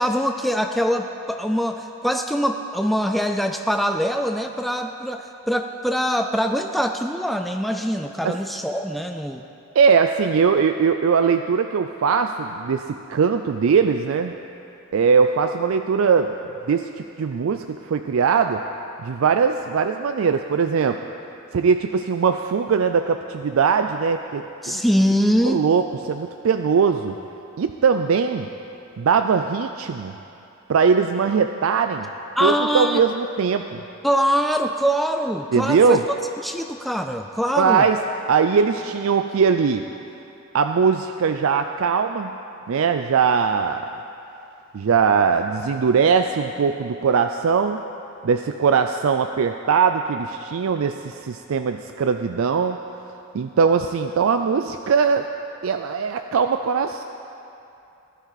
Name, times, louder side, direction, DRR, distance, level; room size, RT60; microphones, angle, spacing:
voice 1, 0.0-9.4 24.6-25.6 32.4-33.0 34.0-36.0 36.4-37.9, equal, ahead, 5 dB, 0.3 m, -23 dB
voice 2, 9.8-14.3 14.9-16.3 16.7-18.6 19.0-21.0 21.5-24.8 25.4-27.2 27.6-28.5 29.0-30.2 30.7-32.1 32.4-33.8 35.5-36.0 37.6-38.0 38.3-39.8 40.5-42.3 42.7-43.9 44.7-47.8 48.2-52.8 53.3-55.3 55.6-57.0, right 6 dB, 75° right, 7 dB, 0.4 m, -20 dB
16.5 x 11.5 x 4.1 m, 2.7 s
head